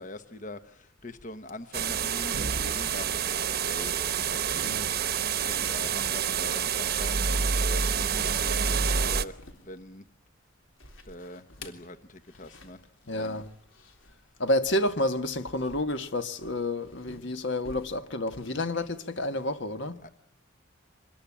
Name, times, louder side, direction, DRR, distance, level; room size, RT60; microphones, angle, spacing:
voice 1, 0.0-9.4 9.6-10.0 11.1-12.8 13.1-13.4 18.7-18.9 20.0-20.1, left 1 dB, 40° left, 1.1 m, -43 dB
sound 1, 1.7-9.3, right 6 dB, 50° right, 1.1 m, -28 dB
sound 2, 9.4-19.6, left 2 dB, 80° left, 3.5 m, -52 dB
voice 2, 13.1-13.5 14.4-20.0, left 1 dB, 60° left, 1.5 m, -29 dB
25.5 x 21.0 x 8.7 m
head